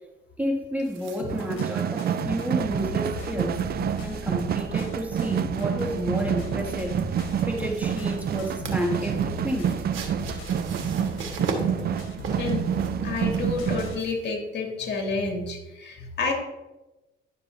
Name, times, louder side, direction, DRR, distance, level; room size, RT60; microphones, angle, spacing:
voice 1, 0.4-7.0 7.5-9.8, equal, 10° right, 1 dB, 1.4 m, -31 dB
sound 1, 0.8-14.3, right 4 dB, 80° right, 1.4 m, -41 dB
sound 2, 1.2-14.0, left 3 dB, 85° left, 1.3 m, -38 dB
sound 3, 1.3-14.0, right 9 dB, 50° right, 0.4 m, -28 dB
voice 2, 13.0-16.3, left 3 dB, 60° left, 0 dB, 2.2 m, -29 dB
11.0 x 6.9 x 2.6 m, 1.0 s
cardioid pair, 90°, 20 cm